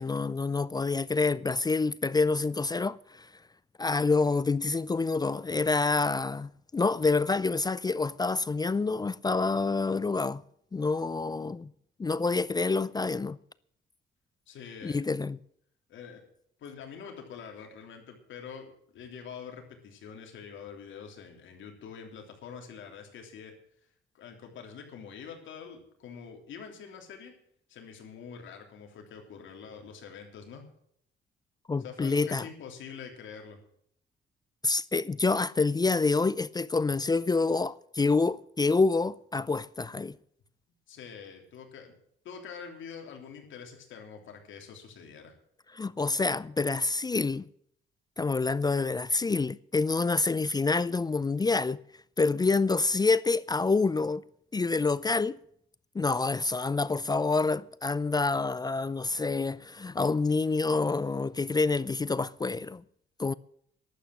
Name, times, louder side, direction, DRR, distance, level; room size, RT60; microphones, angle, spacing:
voice 1, 0.0-3.3 3.8-10.4 10.7-11.7 12.0-13.4 14.8-15.4 31.7-32.5 34.6-40.2 45.7-47.5 48.2-51.8 52.2-54.2 54.5-55.4 55.9-62.8 63.2-63.3, left 3 dB, 20° left, 0.4 m, -27 dB
voice 2, 14.5-15.0 15.9-16.2 16.6-23.5 24.1-27.3 27.7-30.6 31.8-33.6 40.9-41.9 42.2-45.4, left 6 dB, 75° left, 3.4 m, -45 dB
11.5 x 8.5 x 9.1 m
cardioid pair, 90°, 20 cm